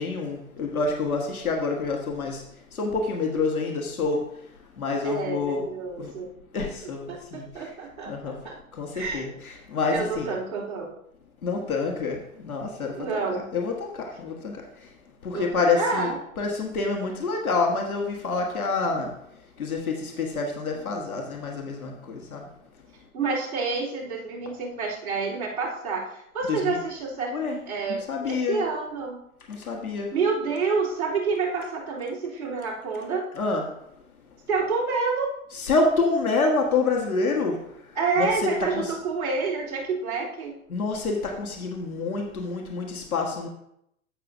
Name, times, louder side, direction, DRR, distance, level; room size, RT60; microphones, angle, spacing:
voice 1, 0.0-5.7 6.0-6.1 6.5-7.7 8.1-8.4 8.7-10.3 11.4-14.9 15.2-16.1 16.4-19.1 19.6-22.5 26.5-26.8 27.3-28.6 29.5-30.1 33.3-33.6 35.5-38.9 40.7-43.5, left 3 dB, 85° left, 0 dB, 1.6 m, -28 dB
voice 2, 5.0-6.3 7.1-8.6 8.9-9.3 9.9-10.9 13.0-13.5 15.3-16.2 23.1-27.4 27.7-29.2 30.1-33.3 34.5-35.3 37.9-40.5, right 4 dB, 80° right, -6 dB, 3.2 m, -28 dB
15.5 x 5.9 x 2.6 m, 0.78 s
figure-of-eight pair, 105°, 42 cm